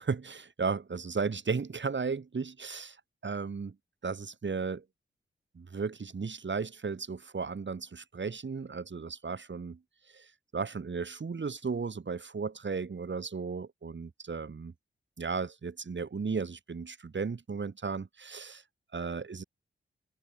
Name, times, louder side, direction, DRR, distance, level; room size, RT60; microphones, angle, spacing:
voice 1, 0.0-3.0 3.2-3.7 4.0-4.8 5.5-9.8 10.1-14.7 15.2-18.6 18.9-19.4, right 5 dB, 60° right, 6.8 m, -35 dB
cardioid pair, 70°, 21 cm